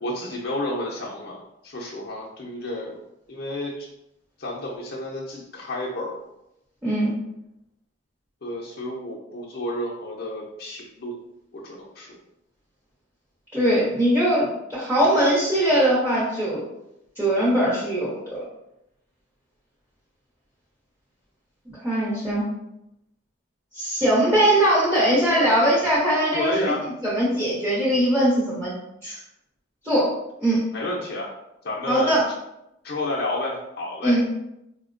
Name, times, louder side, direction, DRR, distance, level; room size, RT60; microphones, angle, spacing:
voice 1, 0.0-3.0 3.3-3.9 4.4-6.2 8.4-11.2 11.5-12.2 26.3-26.8 30.7-31.3 31.6-32.2 32.8-34.3, left 1 dB, 55° left, -4 dB, 0.5 m, -31 dB
voice 2, 13.5-16.6 17.2-18.4 21.8-22.5 23.7-28.7 29.0-29.2 29.8-30.1 30.4-30.6 31.9-32.2 34.0-34.3, right 1 dB, 10° right, -9 dB, 0.8 m, -21 dB
4.2 x 2.1 x 2.5 m, 0.84 s
head